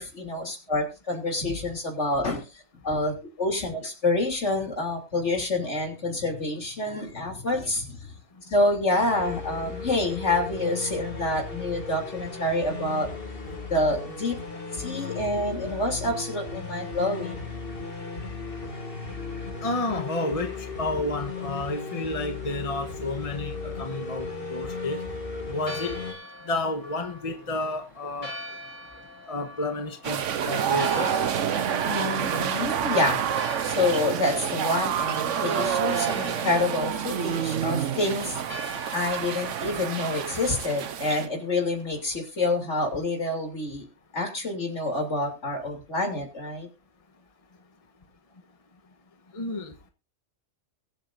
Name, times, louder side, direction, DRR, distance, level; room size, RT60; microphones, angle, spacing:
voice 1, 0.0-2.5 2.8-8.0 8.5-13.1 13.7-14.4 14.8-17.4 31.9-38.4 38.9-43.9 44.1-46.7, left 2 dB, 65° left, 2 dB, 3.6 m, -27 dB
sound 1, 9.0-26.1, left 4 dB, 50° left, 2.5 m, -36 dB
voice 2, 19.6-20.5 20.8-25.0 25.5-26.2 26.5-28.3 29.3-31.2 49.3-49.7, left 2 dB, 30° left, 6 dB, 1.2 m, -31 dB
Church bell, 25.5-42.2, equal, 85° left, 6.9 m, -44 dB
sound 2, 30.0-41.3, right 8 dB, 75° right, 1.2 m, -28 dB
23.0 x 8.1 x 2.6 m, 0.26 s
omnidirectional pair, 1.3 m